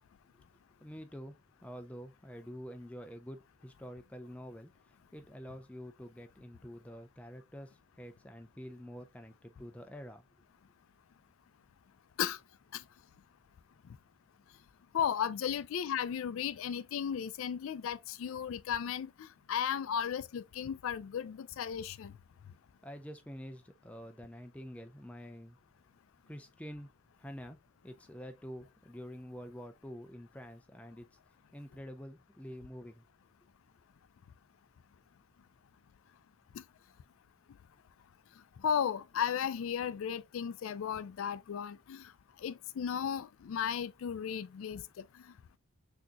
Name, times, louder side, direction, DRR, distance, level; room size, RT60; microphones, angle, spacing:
voice 1, 0.8-10.2 22.8-25.6 26.3-26.9 27.2-27.6 27.8-31.1 31.5-33.0, equal, 5° left, 0.4 m, -47 dB
voice 2, 14.9-22.1 38.6-42.1 42.4-45.0, left 8 dB, 75° left, 0.3 m, -35 dB
6.1 x 2.8 x 2.4 m
head